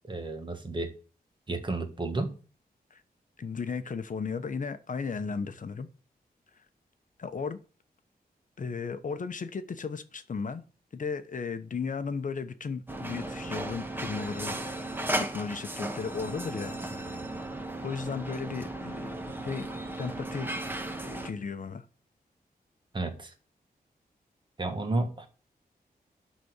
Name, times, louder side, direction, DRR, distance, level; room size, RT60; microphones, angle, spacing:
voice 1, 0.1-0.9 1.5-2.3 22.9-23.3 24.6-25.3, right 2 dB, 30° right, 1.8 m, -31 dB
voice 2, 3.4-5.9 7.2-7.6 8.6-10.6 10.9-14.8 15.2-17.1 17.8-19.1 19.4-19.7 20.0-20.5 21.0-21.8, left 5 dB, 55° left, 0.9 m, -35 dB
sound 1, 12.9-21.3, right 1 dB, 15° right, 1.4 m, -35 dB
12.0 x 4.2 x 8.1 m
wide cardioid pair, 135°, 16 cm